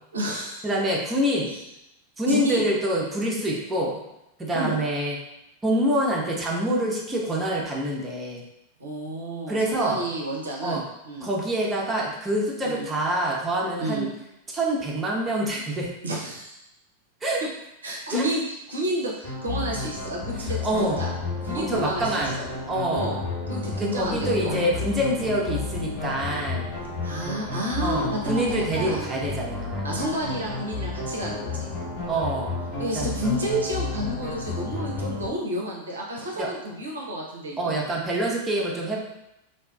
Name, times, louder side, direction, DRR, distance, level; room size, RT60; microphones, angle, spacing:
voice 1, 0.1-0.7 2.3-2.7 4.5-4.8 8.8-11.3 12.6-12.9 13.8-14.1 16.0-16.6 17.8-21.1 21.4-22.5 22.9-23.2 23.5-24.5 27.0-29.0 29.8-31.5 32.8-37.7, right 1 dB, 70° right, -2 dB, 0.5 m, -30 dB
voice 2, 0.6-1.5 2.2-4.0 4.4-5.2 5.6-8.4 9.5-10.1 10.6-10.8 11.2-14.1 14.5-15.9 17.2-17.4 18.1-18.3 20.4-21.0 21.5-22.4 22.7-23.2 23.8-26.7 27.8-29.9 32.1-32.6 32.9-33.2 36.4-36.5 37.6-39.0, right 1 dB, 15° right, -3 dB, 0.5 m, -26 dB
sound 1, 19.2-35.3, left 3 dB, 60° left, 1.4 m, -32 dB
2.5 x 2.2 x 2.3 m, 0.87 s
figure-of-eight pair, 90°, 0 cm